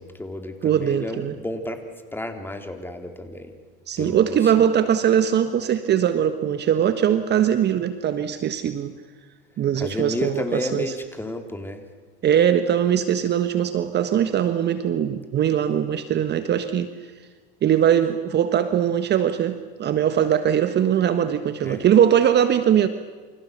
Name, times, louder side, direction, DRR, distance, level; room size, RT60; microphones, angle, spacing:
voice 1, 0.0-1.8 2.1-3.6 4.0-4.5 9.8-11.8 21.6-21.9, left 1 dB, 5° left, 6 dB, 3.9 m, -31 dB
voice 2, 0.6-1.3 3.9-8.9 9.6-10.8 12.2-16.9 17.6-22.9, right 9 dB, 35° right, 10 dB, 1.5 m, -21 dB
28.5 x 28.5 x 6.8 m, 1.5 s
hypercardioid pair, 90°, 29 cm